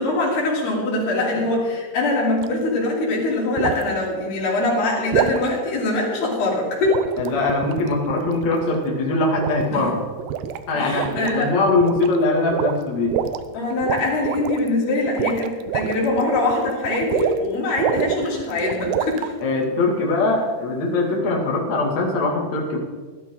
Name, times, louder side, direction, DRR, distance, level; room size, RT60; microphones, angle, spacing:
voice 1, 0.0-7.0 9.7-9.9 10.7-11.5 13.5-19.3, left 2 dB, 75° left, -6 dB, 5.8 m, -23 dB
sound 1, 2.4-2.6 3.6-3.9 5.1-5.5 6.8-8.7 9.4-9.9 10.2-10.6 10.9-11.4 11.7-12.2 12.5-13.4 13.8-14.7 15.1-17.5 17.8-19.3, right 10 dB, 90° right, 2.8 m, -26 dB
voice 2, 7.2-10.0 10.7-11.1 11.3-13.2 19.4-22.8, left 2 dB, 50° left, -1 dB, 3.3 m, -21 dB
20.0 x 12.5 x 3.8 m, 1.4 s
omnidirectional pair, 4.6 m